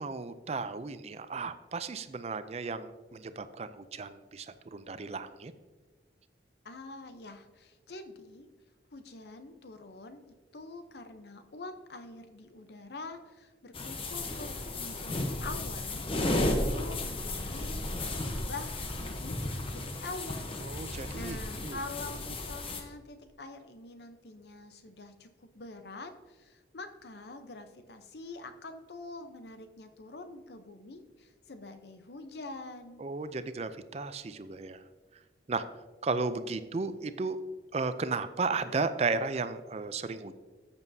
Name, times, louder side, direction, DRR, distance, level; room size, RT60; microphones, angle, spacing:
voice 1, 0.0-5.5 20.6-21.8 33.0-34.8 35.5-35.6 36.0-37.4 37.7-40.3, right 4 dB, 35° right, 12 dB, 0.4 m, -34 dB
voice 2, 6.6-8.5 8.9-20.8 21.1-33.1, left 2 dB, 65° left, 8 dB, 0.7 m, -45 dB
sound 1, 13.7-22.8, left 1 dB, 30° left, 0.9 m, -34 dB
13.5 x 7.1 x 2.7 m, 1.3 s
head